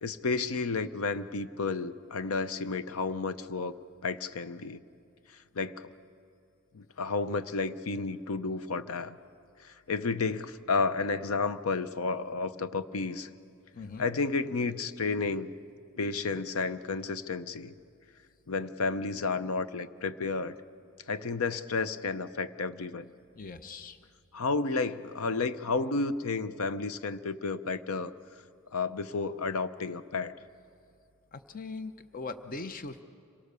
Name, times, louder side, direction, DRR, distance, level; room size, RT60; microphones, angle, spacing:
voice 1, 0.0-3.7 4.0-4.8 5.5-5.9 6.7-9.2 9.6-13.3 14.0-15.5 16.0-17.7 18.5-20.5 21.1-23.1 24.3-28.1 28.7-30.3, left 4 dB, 80° left, 13 dB, 0.7 m, -31 dB
voice 2, 13.7-14.0 23.3-24.0 31.3-33.0, left 3 dB, 40° left, 10 dB, 0.7 m, -40 dB
26.0 x 18.0 x 6.8 m, 2.5 s
head